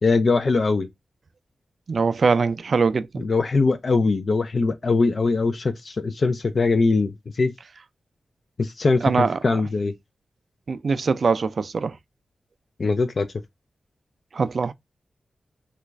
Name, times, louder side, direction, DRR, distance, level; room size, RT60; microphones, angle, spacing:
voice 1, 0.0-0.9 3.2-7.5 8.6-9.1 9.4-9.9 12.8-13.3, left 3 dB, 50° left, 0.4 m, -21 dB
voice 2, 1.9-3.2 9.0-9.6 10.7-12.0 14.3-14.7, right 4 dB, 60° right, 0.3 m, -22 dB
3.0 x 2.4 x 3.3 m
cardioid pair, 80°, 0 cm